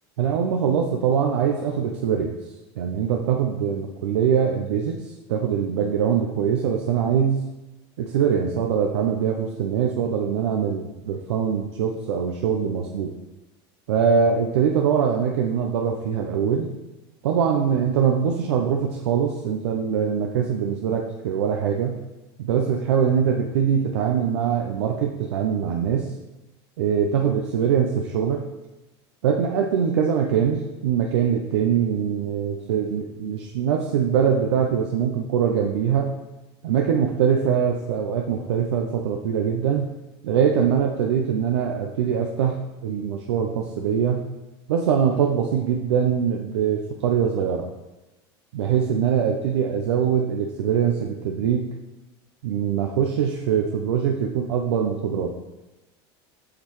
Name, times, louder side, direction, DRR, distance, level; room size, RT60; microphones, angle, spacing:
voice 1, 0.2-2.4 2.8-5.0 5.3-7.4 8.0-13.1 13.9-16.7 17.2-22.0 22.4-26.1 26.8-28.4 29.2-36.1 36.6-39.9 40.2-42.6 42.8-44.2 44.7-47.7 48.5-51.7 52.4-55.3, right 7 dB, 85° right, 1 dB, 0.6 m, -23 dB
8.4 x 5.5 x 3.1 m, 1.0 s
supercardioid pair, 100°, 14 cm